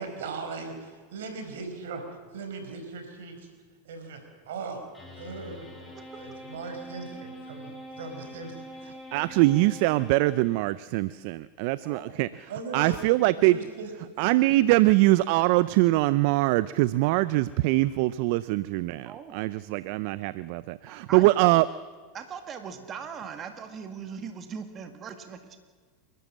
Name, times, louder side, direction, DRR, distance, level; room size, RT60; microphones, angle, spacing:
voice 1, 0.0-2.0 2.3-3.5 3.8-4.2 4.5-4.8 5.1-5.7 6.2-8.9 12.5-13.0 13.3-14.1, right 4 dB, 80° right, 5 dB, 4.7 m, -38 dB
sound 1, 4.9-10.7, equal, 10° left, 7.3 m, -44 dB
voice 2, 6.0-6.5 11.8-12.2 19.1-19.4 20.9-21.6 22.1-25.6, right 6 dB, 35° right, 6 dB, 2.0 m, -40 dB
voice 3, 9.1-12.3 12.7-13.6 14.2-21.6, right 18 dB, 60° right, 17 dB, 0.5 m, -23 dB
29.5 x 12.5 x 7.5 m, 1.5 s
hypercardioid pair, 105°, 0 cm